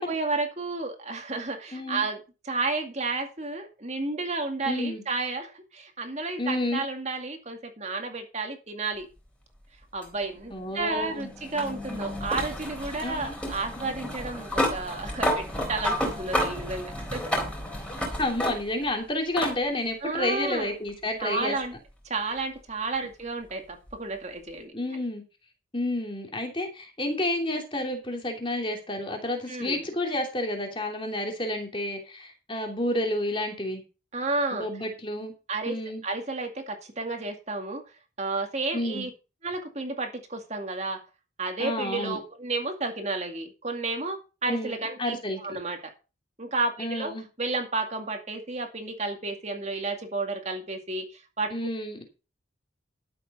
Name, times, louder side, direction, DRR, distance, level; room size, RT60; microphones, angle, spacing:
voice 1, 0.0-2.2 2.4-9.1 9.9-17.3 20.0-20.7 21.2-21.7 22.0-24.7 29.5-29.9 34.1-34.7 35.5-35.8 36.0-37.8 38.2-39.1 39.4-41.0 41.4-45.9 46.4-47.1 47.4-51.5, right 3 dB, 35° right, 4 dB, 2.2 m, -32 dB
voice 2, 1.7-2.1 4.6-5.0 6.4-6.8 10.5-11.3 13.0-13.3 18.2-21.6 24.7-25.2 25.7-33.8 34.5-35.3 35.6-36.0 38.7-39.1 41.6-42.2 44.5-45.4 46.8-47.3 51.5-52.0, left 1 dB, 25° left, 3 dB, 3.0 m, -30 dB
sound 1, 10.0-18.9 19.4-19.6 20.9-21.0 23.9-24.0, equal, 5° left, 4.0 m, -31 dB
12.5 x 7.9 x 5.4 m, 0.31 s
head